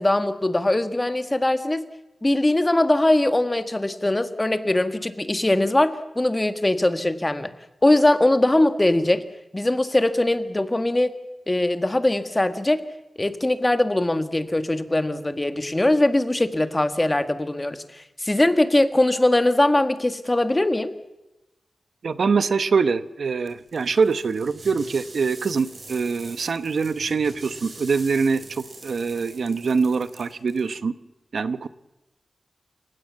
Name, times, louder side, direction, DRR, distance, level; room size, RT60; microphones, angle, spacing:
voice 1, 0.0-1.8 2.2-7.5 7.8-9.2 9.5-11.1 11.5-12.8 13.2-20.9, left 1 dB, 20° left, 10 dB, 1.6 m, -21 dB
voice 2, 22.0-30.9 31.3-31.7, right 5 dB, 75° right, 13 dB, 0.9 m, -24 dB
sound 1, 23.5-30.7, right 3 dB, 45° right, 5.4 m, -44 dB
29.0 x 17.0 x 7.4 m, 0.97 s
wide cardioid pair, 130°, 0 cm